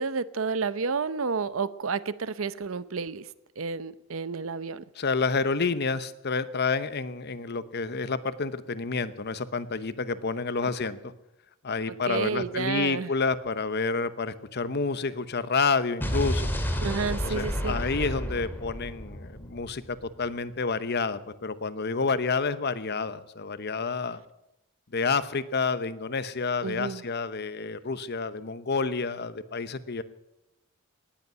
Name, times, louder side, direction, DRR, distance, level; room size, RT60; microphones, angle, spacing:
voice 1, 0.0-3.3 3.6-4.8 12.1-13.1 16.8-17.8 26.6-27.0, right 5 dB, 75° right, 0.7 m, -30 dB
voice 2, 5.0-11.0 11.6-16.5 17.2-24.2 24.9-30.0, left 4 dB, 55° left, 0.9 m, -29 dB
Explosion, 16.0-20.1, equal, 10° left, 2.1 m, -31 dB
18.5 x 8.3 x 9.3 m
head